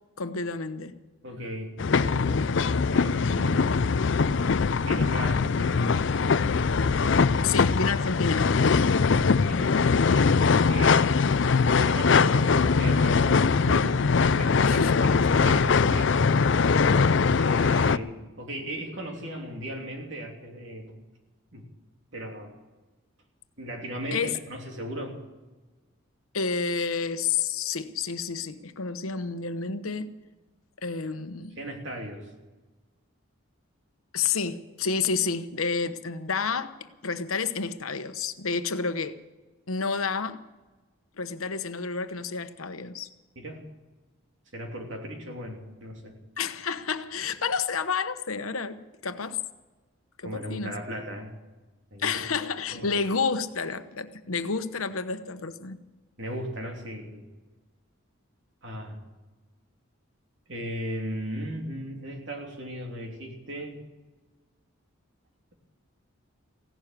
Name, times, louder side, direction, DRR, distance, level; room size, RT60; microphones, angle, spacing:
voice 1, 0.2-1.0 7.4-8.5 14.6-15.4 16.9-17.2 24.1-24.4 26.3-30.1 30.8-31.6 34.1-39.2 39.7-40.4 41.2-43.1 46.4-49.4 50.2-50.7 52.0-55.8, left 5 dB, 80° left, 10 dB, 1.0 m, -30 dB
voice 2, 1.2-2.3 2.9-3.9 4.8-5.8 9.5-11.2 11.7-14.0 14.4-16.7 17.4-20.9 21.5-21.6 22.1-22.5 23.6-25.2 31.6-32.3 43.3-43.6 44.5-46.1 50.2-51.3 51.9-52.2 52.7-52.9 56.2-57.3 58.6-59.0 60.5-63.8, equal, 60° right, 1 dB, 3.0 m, -36 dB
sound 1, 1.8-18.0, left 5 dB, 55° left, 0.4 m, -22 dB
16.5 x 12.0 x 7.4 m, 1.2 s
head